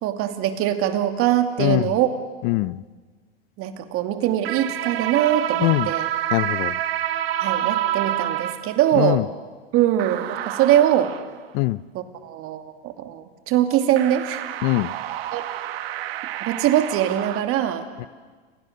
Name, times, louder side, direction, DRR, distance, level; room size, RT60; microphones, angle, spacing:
voice 1, 0.0-2.1 3.6-6.1 7.4-9.3 9.7-11.1 11.9-14.4 15.3-15.4 16.4-17.9, right 11 dB, 45° right, 7 dB, 2.6 m, -22 dB
voice 2, 1.6-2.0 2.4-2.8 5.6-5.9 6.3-6.8 8.9-9.2 11.5-11.8 14.6-14.9, left 21 dB, 50° left, 20 dB, 0.8 m, -22 dB
sound 1, 4.4-8.9 10.0-11.3 14.0-17.4, right 12 dB, 70° right, 1.6 m, -28 dB
29.5 x 25.5 x 6.7 m, 1.5 s
hypercardioid pair, 115°, 31 cm